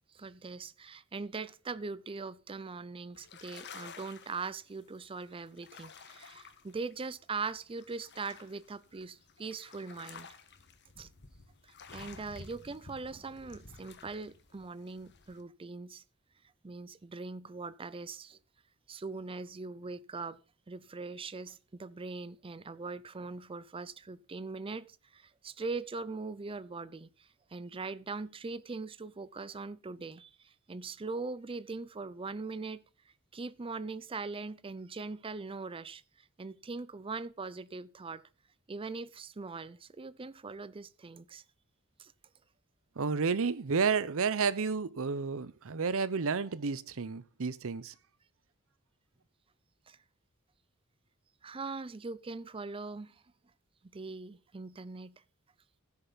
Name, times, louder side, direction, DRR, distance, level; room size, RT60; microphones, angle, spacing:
voice 1, 0.1-10.3 11.0-11.1 11.6-16.0 16.6-18.4 18.9-20.4 20.7-32.8 33.3-38.2 38.7-41.4 42.0-42.1 49.9-50.0 51.4-53.2 53.9-55.2, right 4 dB, 25° right, 0.5 m, -41 dB
sound 1, 3.1-15.4, left 5 dB, 50° left, 1.4 m, -53 dB
voice 2, 43.0-47.9, right 5 dB, 65° right, 0.7 m, -31 dB
15.5 x 6.7 x 4.0 m
head